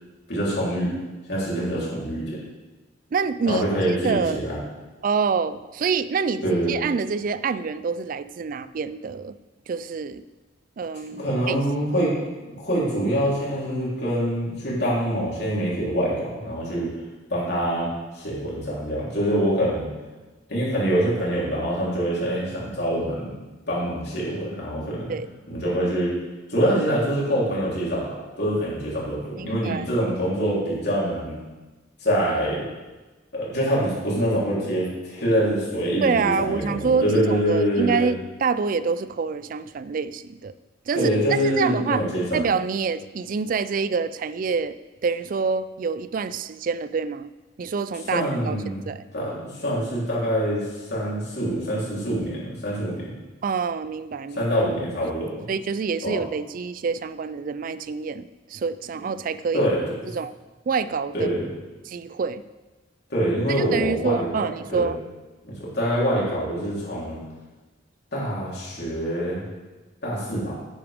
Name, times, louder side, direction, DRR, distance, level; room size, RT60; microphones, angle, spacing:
voice 1, 0.3-0.9 1.3-2.4 3.5-4.6 6.4-6.7 11.1-12.1 12.5-16.9 17.3-17.9 18.1-19.9 20.5-23.3 23.7-25.2 25.5-26.1 26.5-31.4 32.0-32.6 33.3-38.1 40.9-42.5 48.1-48.8 49.1-53.1 54.3-55.5 56.0-56.2 59.5-59.8 61.1-61.5 63.1-64.3 64.7-64.9 65.4-67.2 68.1-69.4 70.0-70.5, equal, 60° left, -6 dB, 3.6 m, -25 dB
voice 2, 3.1-3.6 4.0-4.4 5.0-6.4 6.7-9.4 9.7-10.2 10.8-11.6 25.1-25.3 29.4-29.9 36.0-40.5 40.9-42.0 42.3-44.8 45.0-47.3 47.6-49.0 53.4-54.5 55.5-59.7 60.1-60.3 60.7-61.3 61.9-62.4 63.5-65.0, right 5 dB, 45° right, 14 dB, 0.3 m, -26 dB
10.0 x 9.4 x 3.6 m, 1.2 s
head